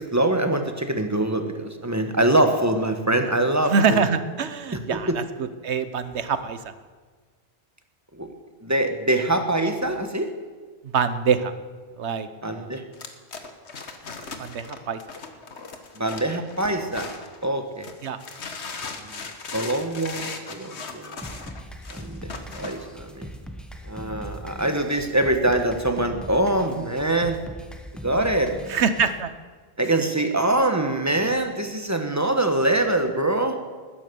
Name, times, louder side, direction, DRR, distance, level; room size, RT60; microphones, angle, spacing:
voice 1, 0.0-4.0 4.7-5.2 8.1-8.3 8.6-10.3 12.4-12.8 15.9-17.1 17.4-17.9 19.5-21.2 21.9-23.3 23.9-27.4 28.0-28.6 29.8-33.6, right 1 dB, 15° right, 6 dB, 1.3 m, -24 dB
voice 2, 3.6-6.6 10.9-11.5 12.0-12.7 14.4-15.0 18.0-18.2 28.7-29.3, right 6 dB, 85° right, 12 dB, 1.2 m, -24 dB
sound 1, 12.9-17.4 17.8-22.9, left 4 dB, 85° left, 1.7 m, -38 dB
sound 2, 21.2-29.2, equal, ahead, 1.2 m, -40 dB
20.0 x 10.5 x 6.9 m, 1.5 s
omnidirectional pair, 1.1 m